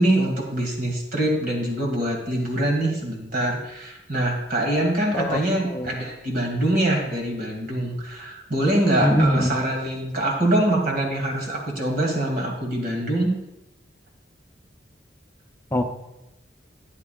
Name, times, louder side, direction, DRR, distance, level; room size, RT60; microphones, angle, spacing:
voice 1, 0.0-13.3, right 1 dB, 55° right, 1 dB, 2.1 m, -24 dB
voice 2, 9.0-9.6 15.7-15.8, equal, 15° left, 4 dB, 0.6 m, -22 dB
12.5 x 9.6 x 2.4 m, 0.92 s
head